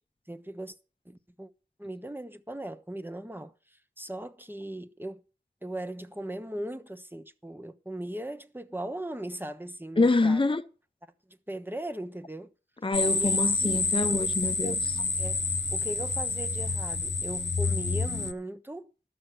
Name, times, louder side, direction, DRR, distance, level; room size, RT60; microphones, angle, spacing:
voice 1, 0.3-0.7 1.0-1.5 1.8-5.2 5.6-10.4 11.3-12.5 13.1-13.3 13.6-13.8 14.6-14.8 15.1-15.4 15.7-18.9, right 1 dB, 10° right, 1.1 m, -38 dB
voice 2, 10.0-10.6 12.8-14.8, left 3 dB, 30° left, 0.6 m, -25 dB
sound 1, 12.9-18.3, left 3 dB, 80° left, 1.0 m, -28 dB
12.5 x 6.4 x 7.7 m
wide cardioid pair, 45°, 18 cm